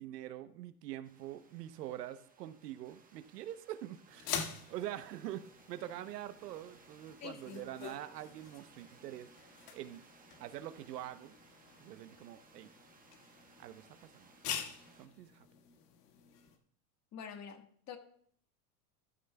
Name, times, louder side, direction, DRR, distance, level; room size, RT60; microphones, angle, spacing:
voice 1, 0.0-4.4 4.7-9.3 9.7-10.0 10.4-11.3 11.8-12.7 13.6-14.3 15.0-15.5, right 12 dB, 80° right, 0.9 m, -45 dB
TV Static Morphagene Reel, 1.0-15.1, right 4 dB, 20° right, 1.4 m, -63 dB
sound 1, 4.1-16.6, left 8 dB, 75° left, 1.9 m, -46 dB
voice 2, 7.2-7.6 17.1-18.0, left 7 dB, 35° left, 1.6 m, -46 dB
13.5 x 13.0 x 2.3 m
hypercardioid pair, 110°, 47 cm